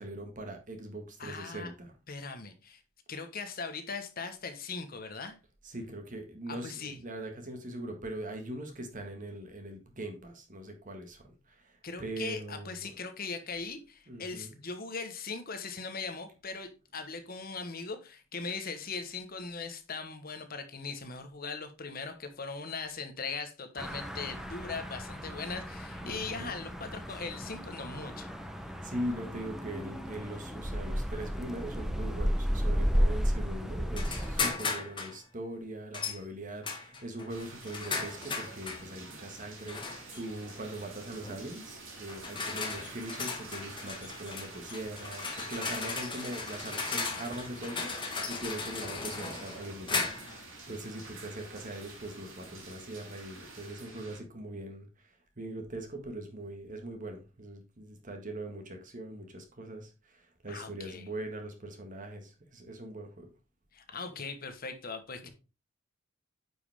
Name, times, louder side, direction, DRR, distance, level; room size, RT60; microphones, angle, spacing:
voice 1, 0.0-1.9 5.6-12.9 14.1-14.5 26.0-26.6 28.6-63.3 65.2-65.3, right 1 dB, 40° right, 1.7 m, -41 dB
voice 2, 1.2-1.7 2.1-2.8 3.1-5.4 6.5-7.0 11.8-28.3 60.5-61.1 63.7-65.3, left 4 dB, 45° left, 1.2 m, -40 dB
sound 1, 23.8-34.5, equal, ahead, 0.8 m, -33 dB
sound 2, 33.9-35.2 35.9-36.2 36.6-38.9 39.7-40.2 41.2-41.5 42.1-50.4, left 4 dB, 25° left, 1.5 m, -36 dB
sound 3, 37.3-54.2, right 3 dB, 75° right, 3.4 m, -48 dB
9.3 x 5.3 x 3.5 m
head